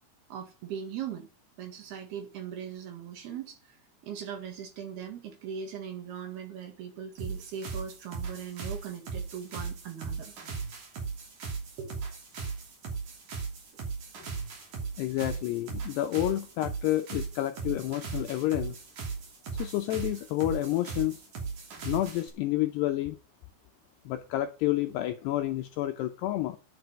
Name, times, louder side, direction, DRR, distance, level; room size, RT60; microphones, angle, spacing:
voice 1, 0.3-1.3 1.6-3.8 4.0-10.3 11.8-12.1, right 8 dB, 60° right, 3.5 m, -39 dB
sound 1, 7.2-22.3, right 5 dB, 45° right, 4.1 m, -38 dB
voice 2, 15.0-18.8 19.6-21.2 21.9-23.2 24.1-26.6, left 15 dB, 80° left, 2.4 m, -29 dB
10.0 x 7.9 x 8.1 m
omnidirectional pair, 5.6 m